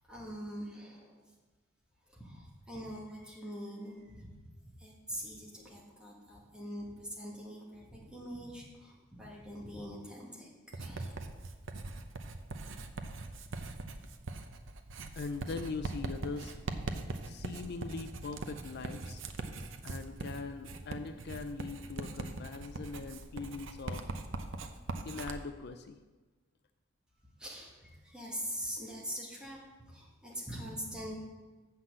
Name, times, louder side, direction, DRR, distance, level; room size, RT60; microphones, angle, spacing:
voice 1, 0.1-1.2 2.1-4.3 4.6-11.1 27.4-29.6 29.9-31.1, equal, 5° right, -4 dB, 2.1 m, -43 dB
Writing, 10.7-25.4, right 2 dB, 65° right, 0.7 m, -41 dB
voice 2, 15.2-16.6 17.2-19.2 19.8-24.0 25.0-26.0, left 4 dB, 55° left, 8 dB, 0.5 m, -41 dB
7.7 x 5.8 x 7.6 m, 1.3 s
head